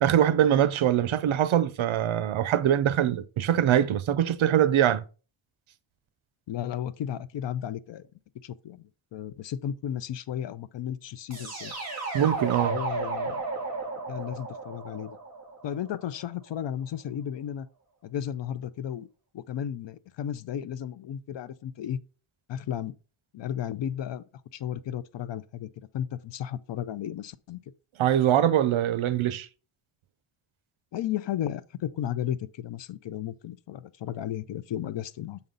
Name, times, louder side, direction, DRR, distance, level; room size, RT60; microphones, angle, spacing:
voice 1, 0.0-5.0 12.1-12.8 28.0-29.5, right 10 dB, 75° right, 0.7 m, -23 dB
voice 2, 6.5-8.1 8.4-11.7 12.6-13.4 14.1-15.2 15.6-17.7 18.0-19.1 19.3-22.0 22.5-22.9 23.3-24.2 24.5-27.6 30.9-35.4, left 10 dB, 60° left, 0.5 m, -34 dB
sound 1, 11.3-16.2, right 3 dB, 30° right, 3.5 m, -34 dB
6.9 x 5.4 x 3.8 m
wide cardioid pair, 165°, 49 cm